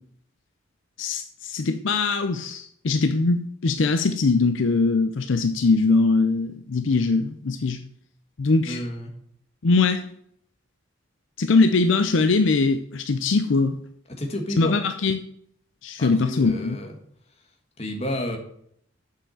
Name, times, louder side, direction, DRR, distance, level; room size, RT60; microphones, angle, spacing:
voice 1, 1.0-7.8 8.4-8.8 9.6-10.1 11.4-13.7 14.6-15.2 15.8-16.8, left 3 dB, 70° left, 9 dB, 0.5 m, -21 dB
voice 2, 8.6-9.1 14.1-14.8 16.0-16.9 17.8-18.4, left 1 dB, 30° left, 3 dB, 1.5 m, -30 dB
7.2 x 5.7 x 7.1 m, 0.69 s
head